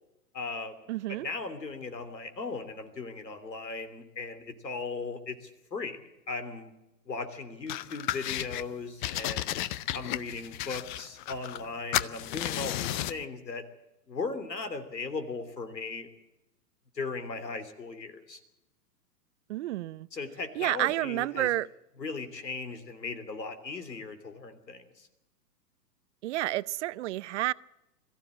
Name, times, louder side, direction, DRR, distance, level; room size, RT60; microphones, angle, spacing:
voice 1, 0.3-6.7 7.1-9.6 9.9-13.6 14.1-16.1 16.9-18.4 20.1-21.5 22.0-25.1, left 4 dB, 85° left, 3.3 m, -37 dB
voice 2, 0.9-1.3 19.5-20.1 20.5-21.7 26.2-27.5, right 16 dB, 45° right, 0.7 m, -30 dB
sound 1, 7.7-8.6 9.0-11.7 11.9-13.2, left 14 dB, 30° left, 0.6 m, -33 dB
22.0 x 14.5 x 8.6 m
hypercardioid pair, 120°, 49 cm